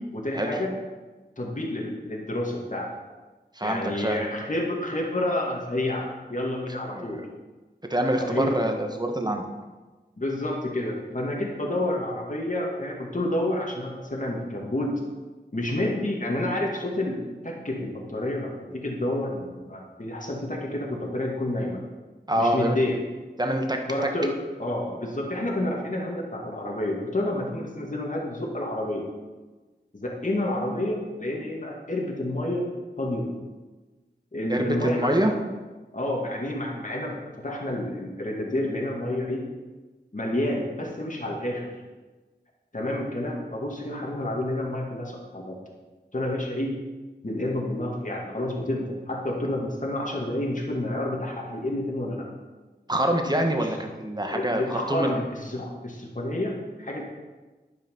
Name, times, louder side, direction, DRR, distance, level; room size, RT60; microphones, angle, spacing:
voice 1, 0.1-0.7 1.4-2.9 3.6-7.2 8.2-8.5 10.2-14.9 15.5-17.2 17.4-21.8 22.4-23.0 23.9-24.3 24.6-29.1 29.9-32.7 33.0-33.3 34.3-35.4 35.9-39.4 40.1-41.7 42.7-45.6 46.1-46.8 47.2-52.3 53.6-53.7 54.3-57.0, left 1 dB, 45° left, -1 dB, 2.4 m, -29 dB
voice 2, 3.5-4.2 6.9-7.2 7.9-9.4 22.3-22.8 23.4-23.8 34.5-35.3 52.9-55.2, right 1 dB, 20° right, 3 dB, 1.6 m, -25 dB
11.0 x 9.2 x 5.5 m, 1.2 s
wide cardioid pair, 55°, 18 cm